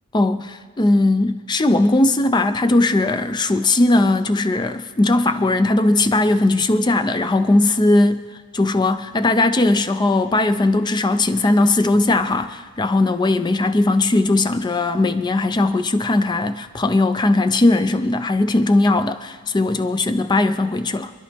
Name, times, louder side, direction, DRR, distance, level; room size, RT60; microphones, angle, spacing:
voice 1, 0.1-8.2 8.5-21.1, left 2 dB, 20° left, 0.4 m, -18 dB
27.0 x 11.0 x 3.4 m
head